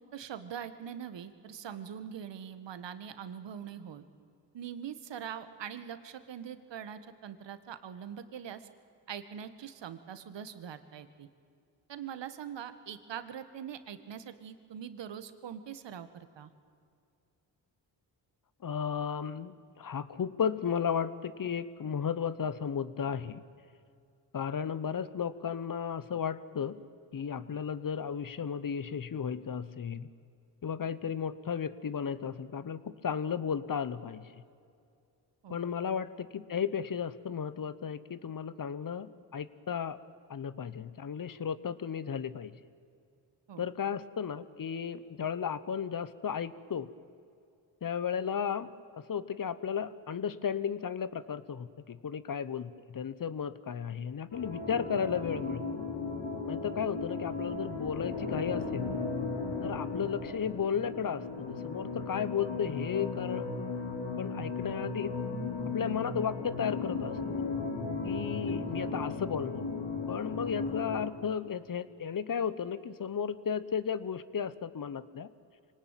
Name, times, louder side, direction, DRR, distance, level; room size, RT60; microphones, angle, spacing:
voice 1, 0.1-4.0 4.5-8.6 9.1-11.3 11.9-16.5 35.4-35.6 43.5-43.6 60.0-60.1, right 8 dB, 70° right, 11 dB, 1.6 m, -43 dB
voice 2, 18.6-23.4 24.3-26.8 27.1-30.1 30.6-34.3 35.5-40.0 40.3-42.5 43.6-46.9 47.8-48.7 49.1-55.6 56.5-58.8 59.6-63.4 64.2-65.1 65.7-67.2 68.0-69.6 70.1-75.3, left 7 dB, 45° left, 15 dB, 1.1 m, -34 dB
sound 1, 54.3-71.1, left 4 dB, 70° left, 2.8 m, -36 dB
24.5 x 18.5 x 9.1 m, 2.5 s
cardioid pair, 60°, 45 cm